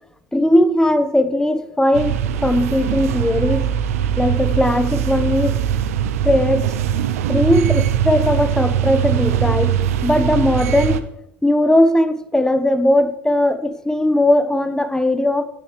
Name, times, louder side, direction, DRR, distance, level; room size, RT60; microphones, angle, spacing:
voice 1, 0.3-2.1 2.4-3.7 4.2-5.6 6.2-6.7 7.3-11.0 11.4-15.4, left 1 dB, 10° left, 11 dB, 1.1 m, -18 dB
sound 1, 1.9-11.0, right 10 dB, 85° right, 0.6 m, -21 dB
13.0 x 9.7 x 3.2 m, 0.80 s
hypercardioid pair, 70°, 8 cm